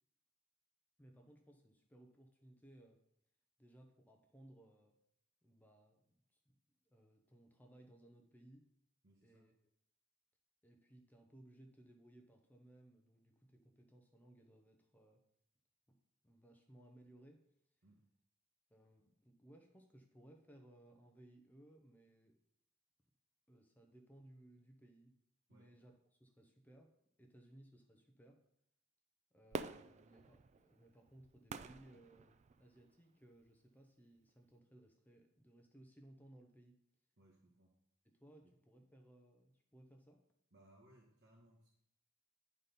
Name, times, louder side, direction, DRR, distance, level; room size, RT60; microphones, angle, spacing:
voice 1, 1.0-3.0 3.6-4.9 5.4-6.6 6.9-8.7 9.2-9.5 10.6-15.2 15.9-16.0 16.2-17.4 18.7-22.4 23.5-25.1 25.5-26.9 27.2-28.4 29.3-36.8 38.0-40.2, right 1 dB, 10° left, 3 dB, 0.7 m, -63 dB
voice 2, 9.0-9.5 17.8-18.1 25.5-25.7 37.2-37.8 38.4-38.5 40.5-41.7, right 1 dB, 55° right, -3 dB, 1.4 m, -67 dB
Fireworks, 29.5-32.9 33.4-33.5, right 4 dB, 35° right, 0.3 m, -48 dB
9.5 x 4.2 x 5.2 m, 0.74 s
head